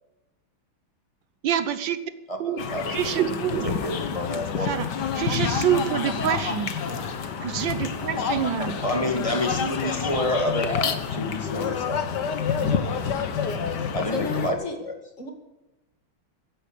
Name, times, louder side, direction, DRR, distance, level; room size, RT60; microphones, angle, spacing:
voice 1, 1.4-2.0 2.4-2.6 2.9-3.7 4.7-4.9 5.2-6.7 7.4-8.8, right 9 dB, 70° right, 13 dB, 1.5 m, -26 dB
voice 2, 2.3-3.2 3.6-4.8 6.9-7.4 8.1-8.4 8.8-12.1 13.9-15.0, left 1 dB, 15° left, 3 dB, 2.2 m, -29 dB
sound 1, 2.6-14.5, left 6 dB, 60° left, 1.8 m, -28 dB
voice 3, 14.1-14.8 15.2-15.3, left 3 dB, 40° left, 4 dB, 2.5 m, -31 dB
16.0 x 10.0 x 8.3 m, 0.98 s
omnidirectional pair, 2.2 m